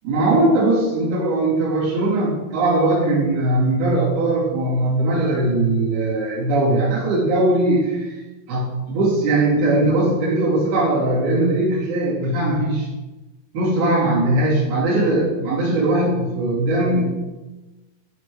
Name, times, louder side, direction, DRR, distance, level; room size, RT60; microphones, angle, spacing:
voice 1, 0.0-8.2 8.5-12.9 13.5-17.1, right 2 dB, 55° right, -8 dB, 4.6 m, -20 dB
11.5 x 4.2 x 4.8 m, 1.1 s
omnidirectional pair, 5.5 m